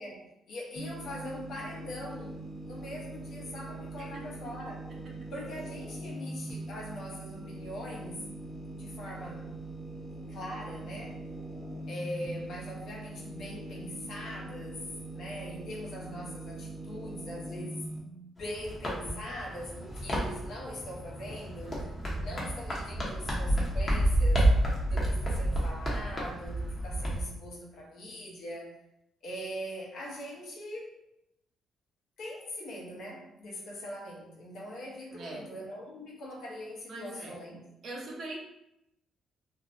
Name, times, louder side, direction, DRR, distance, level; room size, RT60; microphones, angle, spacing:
voice 1, 0.0-2.4 2.6-4.8 5.3-8.4 8.7-9.5 10.3-11.3 11.9-28.8 29.2-31.0 32.2-37.7, equal, 70° left, -3 dB, 0.7 m, -42 dB
sound 1, 0.8-18.0, right 2 dB, ahead, 0.7 m, -42 dB
sound 2, 18.4-27.2, right 1 dB, 35° left, 0.7 m, -30 dB
voice 2, 21.6-22.2 35.1-35.4 36.9-37.3 37.8-38.4, right 2 dB, 60° right, -2 dB, 0.7 m, -42 dB
2.5 x 2.1 x 2.5 m, 0.83 s
cardioid pair, 90°, 0 cm